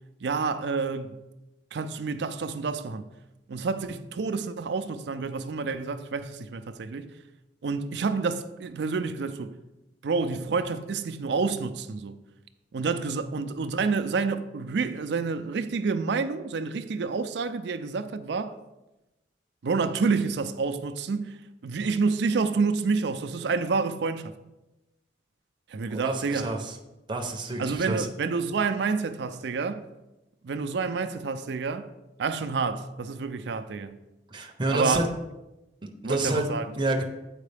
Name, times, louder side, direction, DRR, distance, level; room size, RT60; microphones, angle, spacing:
voice 1, 0.2-1.2 1.7-3.1 3.5-7.1 7.6-9.6 10.0-12.2 12.7-18.5 19.6-21.4 21.6-24.3 25.7-26.5 27.6-29.8 30.4-31.9 32.2-34.0 34.7-35.0 36.0-36.7, right 4 dB, 70° right, 0.4 m, -28 dB
voice 2, 25.9-26.8 27.1-28.1 34.3-35.1 35.8-36.5 36.7-37.0, right 2 dB, 25° right, 0.7 m, -28 dB
8.2 x 4.6 x 3.4 m
head